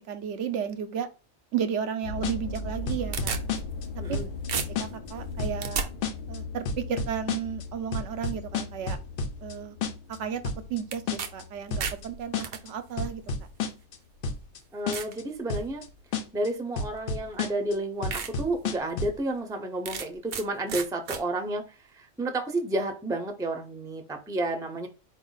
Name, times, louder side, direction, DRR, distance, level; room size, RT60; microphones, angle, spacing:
voice 1, 0.1-1.1 1.5-3.4 4.1-4.2 4.6-5.9 6.3-9.0 9.4-9.8 10.1-10.4 10.7-13.2, right 8 dB, 80° right, 9 dB, 0.9 m, -33 dB
sound 1, 2.0-14.3 14.9-15.3 15.9-16.0 16.3-16.4, left 2 dB, 55° left, 0.7 m, -39 dB
sound 2, 2.2-2.6 2.9-3.9 4.1-4.5 4.8-5.1 5.4-5.7 6.0-6.4 6.7-7.6 7.9-9.5 9.8-10.2 10.4-10.8 11.1-11.4 11.7-12.1 12.3-12.7 13.0-14.0 14.2-14.6 14.9-15.2 15.5-15.9 16.1-16.5 16.8-17.7 18.0-19.2, left 4 dB, 75° left, 1.0 m, -31 dB
sound 3, 2.7-4.2 4.5-5.9 10.9-11.3 11.6-12.6 13.5-13.6 14.2-14.3 14.9-15.2 15.7-16.0 17.2-17.3 17.7-17.8 18.1-18.3 18.7-18.8 19.9-20.4 20.7-21.2, right 6 dB, 55° right, 0.6 m, -33 dB
voice 2, 14.7-15.8 16.3-21.7 21.9-24.9, right 2 dB, 5° right, 4 dB, 0.5 m, -31 dB
4.4 x 2.5 x 3.9 m, 0.31 s
omnidirectional pair, 1.2 m